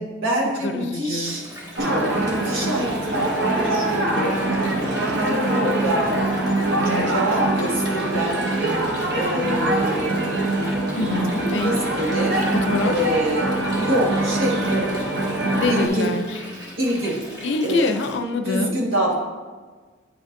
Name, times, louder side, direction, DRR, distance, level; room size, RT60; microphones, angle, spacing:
voice 1, 0.0-1.4 1.8-4.4 5.1-6.2 6.8-8.5 9.1-10.4 11.6-12.4 12.8-15.1 15.7-16.1 16.8-17.2 17.6-17.9 18.4-19.1, right 1 dB, 85° right, -2 dB, 1.5 m, -26 dB
voice 2, 0.6-1.4 11.0-11.8 12.6-12.9 15.5-16.4 17.4-18.7, left 3 dB, 60° left, 7 dB, 0.5 m, -25 dB
Water, 1.2-18.2, equal, 20° right, 1.6 m, -40 dB
sound 1, 1.8-15.9, right 1 dB, 55° right, 0.8 m, -23 dB
9.4 x 5.1 x 2.6 m, 1.4 s
head